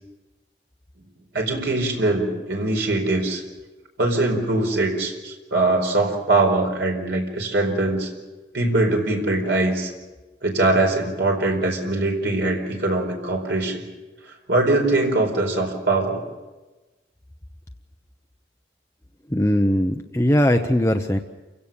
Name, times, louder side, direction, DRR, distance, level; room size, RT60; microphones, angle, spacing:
voice 1, 1.3-3.4 4.0-8.1 8.5-9.9 10.4-13.8 14.5-16.2, right 2 dB, 75° right, 2 dB, 4.7 m, -22 dB
voice 2, 19.3-21.2, equal, 15° left, 4 dB, 0.8 m, -20 dB
28.5 x 17.0 x 7.0 m, 1.2 s
head